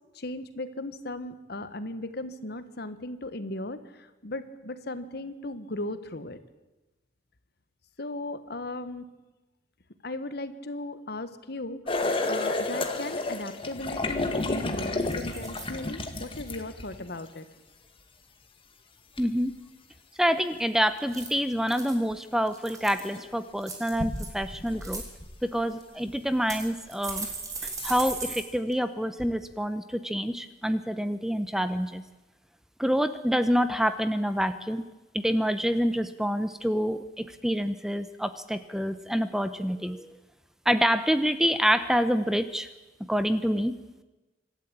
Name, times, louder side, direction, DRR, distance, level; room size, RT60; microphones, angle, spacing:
voice 1, 0.1-6.4 8.0-9.0 10.0-17.4, left 2 dB, 60° left, 12 dB, 1.4 m, -37 dB
sound 1, 11.9-17.2 19.2-19.3 22.1-22.2 23.0-23.3 23.9-25.6 26.1-26.2 27.1-27.2 27.7-28.0, left 2 dB, 30° left, 1.9 m, -31 dB
sound 2, 14.3-14.6 15.1-15.7 16.1-16.5 21.0-22.0 22.5-23.1 23.6-24.3 24.7-25.0 25.8-25.9 26.5-28.4 28.7-28.8 29.2-29.3, right 3 dB, 20° right, 3.8 m, -38 dB
voice 2, 19.2-19.5 20.2-25.0 25.4-27.3 27.8-32.0 32.8-34.8 35.1-40.2 40.7-42.7 43.1-43.7, equal, 5° right, 12 dB, 0.8 m, -27 dB
25.5 x 12.5 x 8.8 m, 1.1 s
head